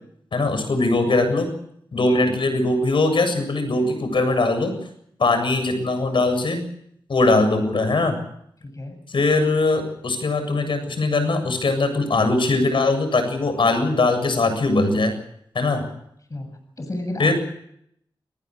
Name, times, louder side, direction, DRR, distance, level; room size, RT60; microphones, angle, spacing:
voice 1, 0.3-1.5 1.9-4.7 5.2-6.6 7.1-8.2 9.1-15.1 15.5-15.8 17.2-17.3, left 2 dB, 70° left, 8 dB, 7.6 m, -21 dB
voice 2, 1.0-1.4 8.6-9.0 16.3-17.3, left 2 dB, 40° left, 7 dB, 7.6 m, -32 dB
29.5 x 20.0 x 6.4 m, 0.71 s
wide cardioid pair, 75°, 9 cm